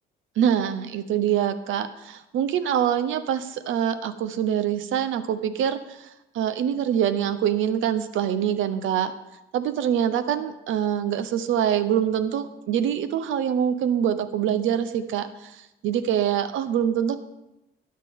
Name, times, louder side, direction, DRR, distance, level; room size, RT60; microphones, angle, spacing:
voice 1, 0.4-6.1 6.3-9.1 9.5-17.2, right 9 dB, 80° right, 12 dB, 0.8 m, -25 dB
13.0 x 9.7 x 3.6 m, 0.93 s
cardioid pair, 125°, 20 cm